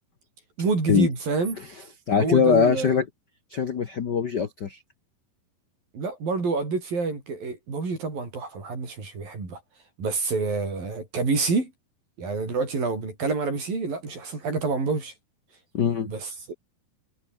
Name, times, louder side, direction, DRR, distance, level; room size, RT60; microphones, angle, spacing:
voice 1, 0.6-1.6 2.2-2.9 5.9-9.6 10.0-11.7 12.2-15.1 16.1-16.5, right 4 dB, 70° right, 9.3 m, -27 dB
voice 2, 2.1-3.1 3.5-4.8 15.7-16.1, left 6 dB, 80° left, 0.9 m, -22 dB
omnidirectional pair, 4.2 m